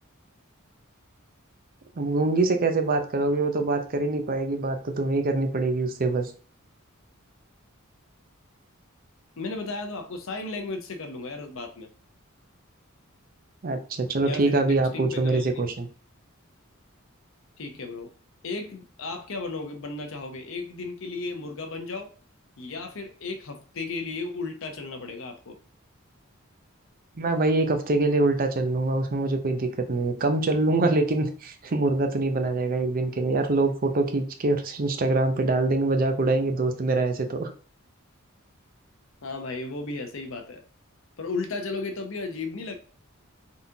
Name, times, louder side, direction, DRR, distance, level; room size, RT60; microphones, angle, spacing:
voice 1, 2.0-6.3 13.6-15.9 27.2-37.5, right 2 dB, 45° right, 0.6 m, -24 dB
voice 2, 9.4-11.9 14.2-14.6 14.9-15.7 17.6-18.1 18.4-22.1 22.6-25.6 39.2-40.6 41.2-42.7, left 3 dB, 70° left, 0.8 m, -34 dB
4.1 x 3.6 x 2.8 m
head